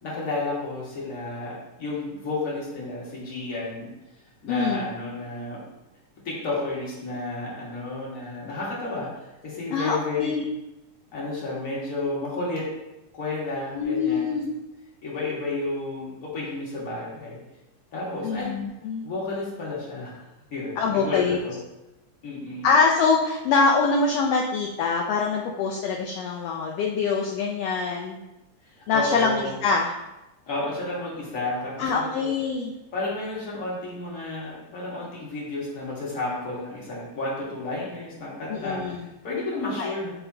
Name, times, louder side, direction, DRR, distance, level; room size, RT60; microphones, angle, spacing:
voice 1, 0.0-3.9 4.4-5.6 6.2-10.4 11.1-12.7 13.1-14.3 15.0-17.4 17.9-18.5 19.0-20.2 20.5-21.5 22.2-22.7 28.6-29.6 30.5-32.3 32.9-40.1, left 2 dB, 35° left, -5 dB, 1.7 m, -31 dB
voice 2, 4.5-4.8 9.7-10.4 13.7-14.5 18.2-19.1 20.8-21.4 22.6-28.2 28.9-29.9 31.8-32.8 38.5-39.1 39.8-39.9, left 4 dB, 75° left, 1 dB, 1.5 m, -24 dB
11.0 x 3.9 x 2.8 m, 0.97 s
omnidirectional pair, 3.4 m